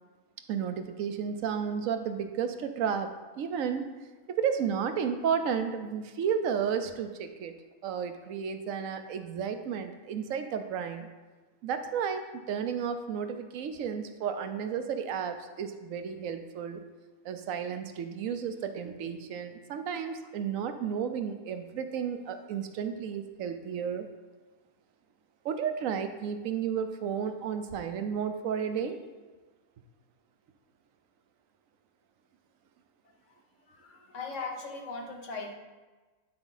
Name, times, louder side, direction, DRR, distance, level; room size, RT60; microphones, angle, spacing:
voice 1, 0.5-3.9 4.3-7.5 7.8-11.1 11.6-16.8 17.2-24.1 25.4-29.0, right 7 dB, 70° right, 8 dB, 1.0 m, -32 dB
voice 2, 33.7-35.5, left 3 dB, 60° left, 2 dB, 1.3 m, -39 dB
9.8 x 4.8 x 4.0 m, 1.3 s
omnidirectional pair, 1.5 m